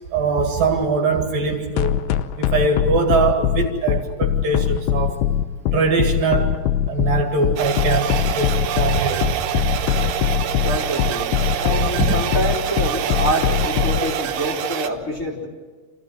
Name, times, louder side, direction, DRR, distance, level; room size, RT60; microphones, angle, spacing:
voice 1, 0.1-2.0 2.4-5.2 5.7-6.6 6.9-9.3 9.5-9.6 12.0-12.1, right 4 dB, 60° right, 3 dB, 3.4 m, -22 dB
sound 1, 1.8-14.0, left 10 dB, 75° left, 2.8 m, -21 dB
sound 2, 7.6-14.9, right 10 dB, 75° right, 3.2 m, -26 dB
voice 2, 10.6-15.5, right 1 dB, 20° left, -4 dB, 3.3 m, -26 dB
28.0 x 15.5 x 9.0 m, 1.4 s
omnidirectional pair, 4.8 m